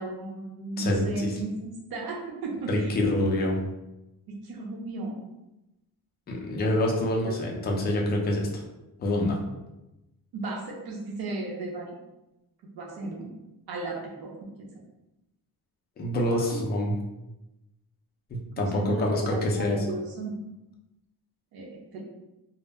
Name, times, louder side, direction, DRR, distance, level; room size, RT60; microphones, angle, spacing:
voice 1, 0.0-3.1 4.4-5.2 7.2-7.4 10.4-12.0 12.7-13.3 13.7-14.7 16.3-16.5 18.6-19.0 19.3-20.3 21.5-22.0, right 2 dB, 75° right, -2 dB, 0.6 m, -35 dB
voice 2, 0.8-1.3 2.7-3.6 6.3-8.6 9.0-9.4 16.0-17.0 18.3-19.8, left 1 dB, 25° left, -1 dB, 0.4 m, -26 dB
2.0 x 2.0 x 3.3 m, 0.96 s
cardioid pair, 145°, 37 cm